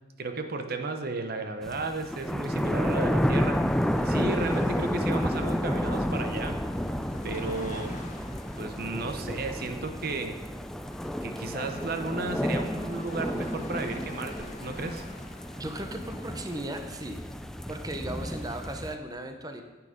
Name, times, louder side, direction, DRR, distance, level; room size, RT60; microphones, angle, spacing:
voice 1, 0.2-3.6 4.0-6.6 7.2-8.0 8.6-10.4 11.2-15.1, right 3 dB, 50° right, 7 dB, 0.8 m, -34 dB
sound 1, 1.6-18.9, equal, ahead, 0.3 m, -31 dB
sound 2, 3.5-18.6, left 2 dB, 40° left, 1.4 m, -47 dB
voice 2, 15.6-17.2 17.7-19.6, right 1 dB, 20° right, 6 dB, 0.8 m, -36 dB
10.5 x 8.7 x 5.1 m, 1.2 s
head